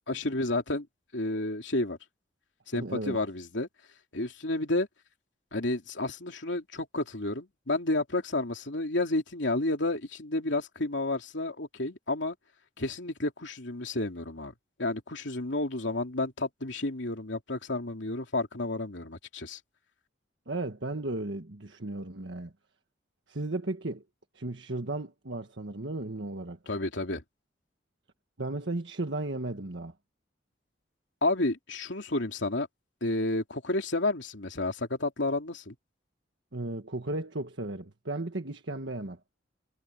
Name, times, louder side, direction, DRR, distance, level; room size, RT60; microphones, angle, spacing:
voice 1, 0.1-0.9 1.1-2.0 2.7-3.7 4.1-4.9 5.5-12.3 12.8-14.5 14.8-19.6 26.7-27.2 31.2-32.7 33.0-35.7, left 2 dB, 75° left, 3.0 m, -31 dB
voice 2, 2.7-3.2 20.5-22.5 23.3-24.0 24.3-26.6 28.4-29.9 36.5-39.2, right 2 dB, 70° right, 1.5 m, -35 dB
head